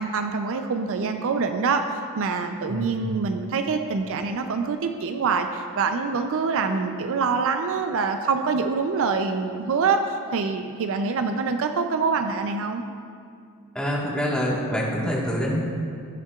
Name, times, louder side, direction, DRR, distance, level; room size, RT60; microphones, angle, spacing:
voice 1, 0.0-12.8, right 4 dB, 65° right, 7 dB, 0.4 m, -25 dB
voice 2, 2.7-3.0 13.7-15.6, equal, 5° left, -5 dB, 1.4 m, -26 dB
17.0 x 5.8 x 2.4 m, 2.3 s
head